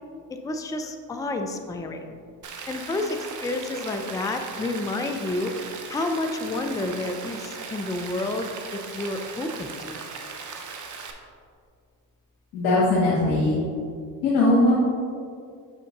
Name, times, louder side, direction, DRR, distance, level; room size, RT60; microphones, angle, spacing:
voice 1, 0.3-2.2 2.7-5.5 5.9-10.1, left 2 dB, 10° left, 5 dB, 0.5 m, -30 dB
Rain, 2.4-11.1, right 5 dB, 40° right, 0.9 m, -38 dB
voice 2, 12.5-13.6 14.2-14.7, left 2 dB, 80° left, -7 dB, 1.4 m, -20 dB
6.6 x 6.2 x 3.0 m, 2.2 s
hypercardioid pair, 60°, 48 cm